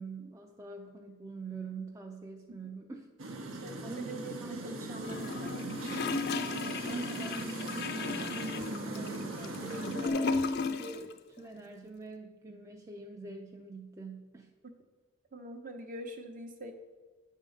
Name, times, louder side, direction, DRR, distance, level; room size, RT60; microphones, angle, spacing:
voice 1, 0.0-3.1 3.4-4.8 6.8-14.5, right 3 dB, 15° right, 1 dB, 0.4 m, -45 dB
sound 1, 3.2-10.1, right 2 dB, 75° right, 0.9 m, -39 dB
voice 2, 3.6-5.5 15.3-16.7, right 1 dB, 40° right, 5 dB, 0.8 m, -43 dB
Gurgling / Toilet flush, 5.0-11.1 11.4-11.5, left 4 dB, 55° left, 0.4 m, -35 dB
9.2 x 3.7 x 6.5 m, 1.4 s
head